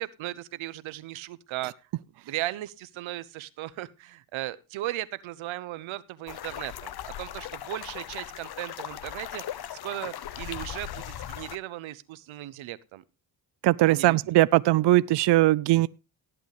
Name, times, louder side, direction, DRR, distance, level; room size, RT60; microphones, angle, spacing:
voice 1, 0.0-1.7 2.2-6.9 7.2-13.0 13.9-14.4, right 15 dB, 85° right, 0.8 m, -37 dB
sound 1, 6.3-11.6, left 11 dB, 55° left, 0.7 m, -38 dB
voice 2, 13.6-15.9, right 16 dB, 65° right, 0.5 m, -20 dB
18.0 x 8.1 x 3.2 m
cardioid pair, 65°, 46 cm